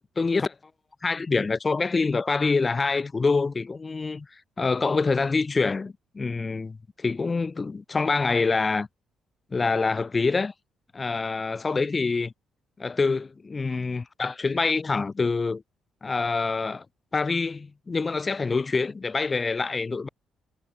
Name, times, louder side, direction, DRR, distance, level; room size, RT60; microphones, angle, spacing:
voice 1, 0.2-0.5 1.0-4.3 4.6-8.9 9.5-10.5 10.9-12.3 12.8-15.6 16.0-16.8 17.1-20.1, left 4 dB, 30° left, 5.0 m, -26 dB
cardioid pair, 90°, 0 cm